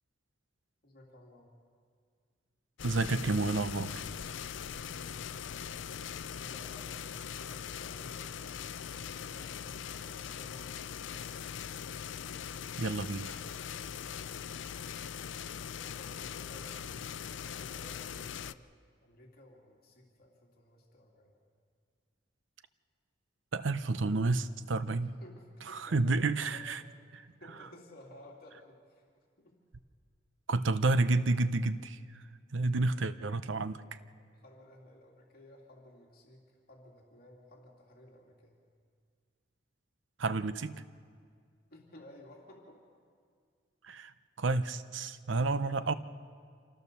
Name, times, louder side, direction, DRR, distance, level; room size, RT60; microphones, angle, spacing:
voice 1, 0.8-1.5 4.8-5.7 6.3-11.3 15.7-18.6 19.0-21.3 25.2-27.0 27.4-29.0 29.4-29.6 32.8-33.2 34.2-38.6 41.7-42.8 45.6-46.0, left 1 dB, 55° left, -2 dB, 3.1 m, -56 dB
sound 1, 2.8-18.5, left 8 dB, 70° left, 0.5 m, -41 dB
voice 2, 2.8-4.0 12.8-13.4 23.5-25.2 25.7-26.8 27.1-27.2 30.5-32.2 32.5-33.8 40.2-40.8 43.8-45.9, right 3 dB, 75° right, 13 dB, 0.7 m, -30 dB
26.5 x 15.0 x 6.9 m, 2.1 s
head